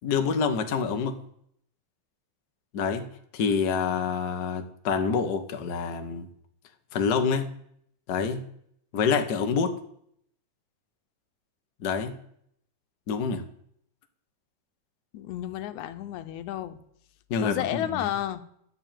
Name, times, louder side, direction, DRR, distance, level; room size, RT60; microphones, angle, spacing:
voice 1, 0.0-1.2 2.7-3.1 3.3-6.3 6.9-7.5 8.1-8.4 8.9-9.8 11.8-12.1 13.1-13.4 17.3-17.8, left 5 dB, 60° left, 6 dB, 1.0 m, -27 dB
voice 2, 15.1-16.8 17.4-18.4, left 12 dB, 85° left, 11 dB, 2.2 m, -31 dB
12.5 x 6.0 x 9.1 m, 0.70 s
omnidirectional pair, 3.3 m